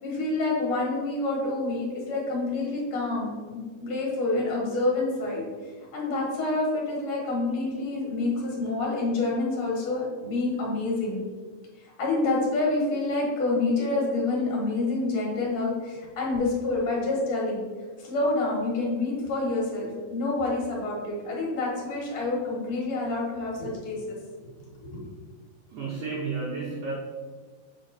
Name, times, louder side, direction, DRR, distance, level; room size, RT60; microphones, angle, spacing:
voice 1, 0.0-5.4 5.9-11.2 12.0-17.6 18.0-24.2 24.6-25.0, left 2 dB, 55° left, -3 dB, 2.5 m, -27 dB
voice 2, 25.7-26.9, right 4 dB, 85° right, -4 dB, 1.4 m, -32 dB
7.1 x 3.5 x 4.3 m, 1.5 s
omnidirectional pair, 3.9 m